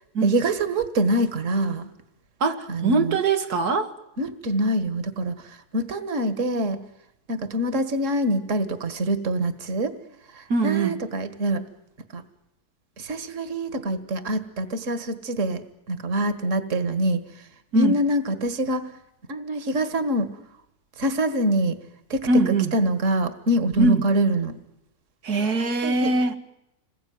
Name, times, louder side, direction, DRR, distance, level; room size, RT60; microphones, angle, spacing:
voice 1, 0.2-1.9 2.7-3.2 4.2-6.8 7.3-10.0 10.3-11.6 12.1-12.2 13.0-17.2 17.7-18.9 19.3-20.3 21.0-21.8 22.1-24.6 25.8-26.1, right 1 dB, 55° right, 2.0 m, -25 dB
voice 2, 2.4-3.9 10.5-11.0 17.7-18.0 22.3-22.7 23.8-24.0 25.2-26.4, right 3 dB, 90° right, 2.2 m, -22 dB
27.5 x 21.0 x 9.4 m
omnidirectional pair, 1.6 m